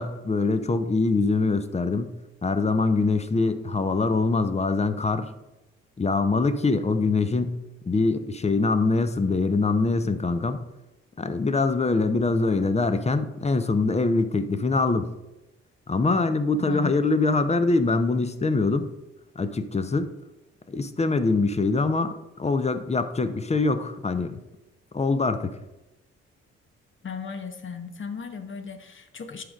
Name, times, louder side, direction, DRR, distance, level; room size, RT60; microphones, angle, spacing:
voice 1, 0.0-2.1 2.4-5.3 6.0-7.6 7.9-10.6 11.2-15.1 15.9-18.9 19.4-20.1 20.7-24.4 24.9-25.6, left 3 dB, 20° left, 10 dB, 0.6 m, -24 dB
voice 2, 16.6-16.9 27.0-29.4, left 6 dB, 40° left, 7 dB, 1.0 m, -36 dB
11.0 x 5.0 x 2.4 m, 0.98 s
hypercardioid pair, 45°, 32 cm